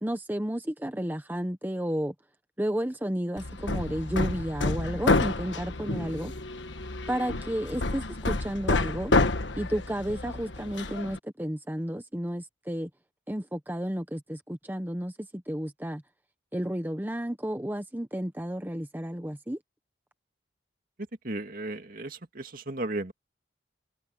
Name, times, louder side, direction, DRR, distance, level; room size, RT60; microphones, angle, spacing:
voice 1, 0.0-2.1 2.6-6.3 7.1-9.1 9.6-12.9 13.3-16.0 16.5-19.6, equal, 10° right, 1.0 m, -32 dB
Hammer, 3.4-11.2, left 2 dB, 90° left, 1.4 m, -29 dB
voice 2, 21.2-23.1, right 2 dB, 50° right, 2.4 m, -35 dB
head